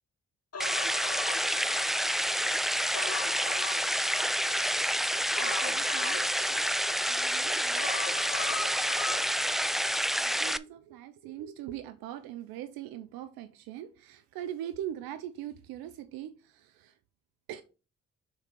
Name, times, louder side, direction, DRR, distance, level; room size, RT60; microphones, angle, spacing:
Human voice, 0.5-2.3 2.7-4.7 5.4-7.1 7.8-9.7 10.0-10.1, left 4 dB, 45° left, 1.9 m, -40 dB
sound 1, 0.6-10.6, equal, ahead, 0.4 m, -28 dB
voice 1, 5.4-6.2 7.1-7.9 8.4-8.6 10.2-17.0 17.5-17.6, right 11 dB, 85° right, 0.6 m, -41 dB
6.5 x 3.6 x 5.3 m
supercardioid pair, 45°, 35 cm